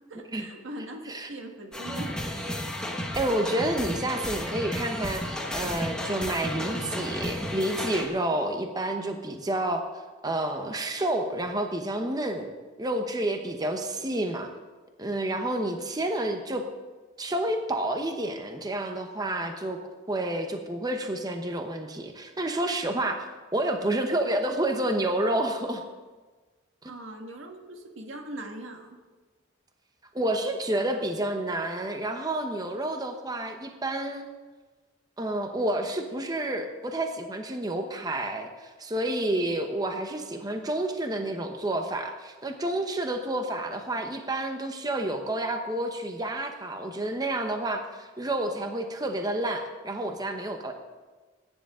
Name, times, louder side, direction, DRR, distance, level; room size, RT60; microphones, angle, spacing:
voice 1, 0.1-2.2 26.9-29.0, right 1 dB, 90° right, 3 dB, 1.7 m, -41 dB
sound 1, 1.7-8.1, left 1 dB, 5° left, 1.4 m, -33 dB
voice 2, 3.2-9.8 10.2-12.5 12.8-14.5 15.0-16.7 17.2-19.8 20.1-23.3 23.5-25.8 26.8-26.9 30.1-34.2 35.2-50.7, right 1 dB, 20° right, 5 dB, 0.9 m, -29 dB
22.0 x 10.0 x 3.7 m, 1.3 s
head